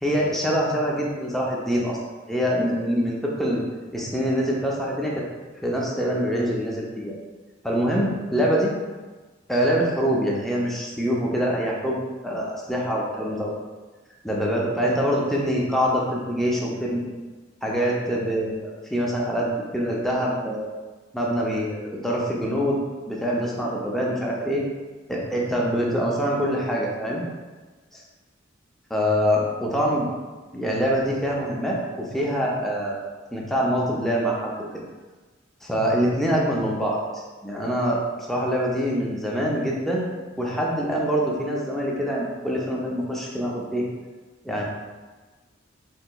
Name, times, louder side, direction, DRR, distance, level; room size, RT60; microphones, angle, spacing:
voice 1, 0.0-2.0 2.3-3.6 3.9-5.2 5.6-7.1 7.6-8.7 9.5-13.5 14.2-17.1 17.6-20.7 21.1-22.8 23.1-24.6 25.1-27.2 27.9-28.0 28.9-30.1 30.5-33.0 33.3-34.8 35.6-38.0 38.3-40.1 40.4-43.9 44.4-44.6, equal, ahead, -4 dB, 0.4 m, -25 dB
4.2 x 2.9 x 2.2 m, 1.3 s
head